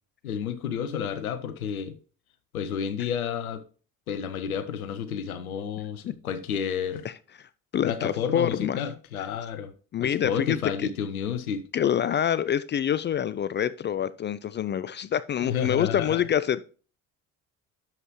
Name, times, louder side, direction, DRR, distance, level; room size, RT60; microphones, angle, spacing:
voice 1, 0.2-1.9 2.5-3.6 4.1-7.1 7.8-9.7 10.0-11.6 15.4-16.2, left 8 dB, 85° left, 0.7 m, -30 dB
voice 2, 7.7-8.8 9.9-10.9 11.7-16.6, left 9 dB, 25° left, 0.4 m, -26 dB
11.0 x 7.3 x 3.0 m
figure-of-eight pair, 55°, 42 cm